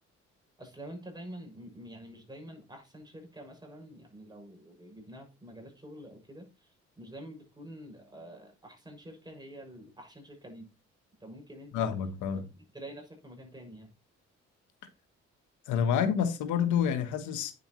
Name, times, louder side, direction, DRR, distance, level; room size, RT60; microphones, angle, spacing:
voice 1, 0.6-6.7 7.0-10.7 11.2-11.9 12.4-13.9, right 1 dB, 15° right, 6.5 m, -47 dB
voice 2, 11.7-12.4 15.7-17.5, left 8 dB, 90° left, 1.3 m, -28 dB
9.4 x 8.1 x 3.1 m
cardioid pair, 75°, 29 cm